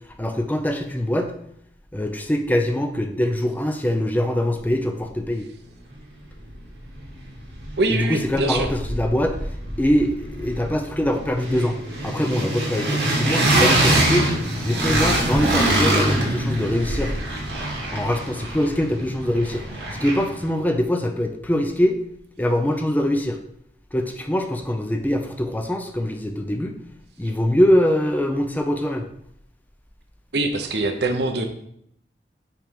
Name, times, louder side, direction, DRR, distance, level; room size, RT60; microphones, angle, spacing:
voice 1, 0.2-1.3 1.9-5.5 7.9-9.4 9.8-11.8 12.0-14.3 14.6-17.2 17.9-19.6 19.9-22.0 22.4-23.4 23.9-26.8 27.2-29.1, left 1 dB, 10° left, 5 dB, 0.4 m, -23 dB
sound 1, 6.5-6.6 6.8-8.0 8.2-20.5, right 1 dB, 90° right, 1.9 m, -24 dB
voice 2, 7.8-8.7 30.3-31.5, right 2 dB, 70° right, 5 dB, 0.8 m, -23 dB
5.8 x 3.3 x 5.2 m, 0.71 s
head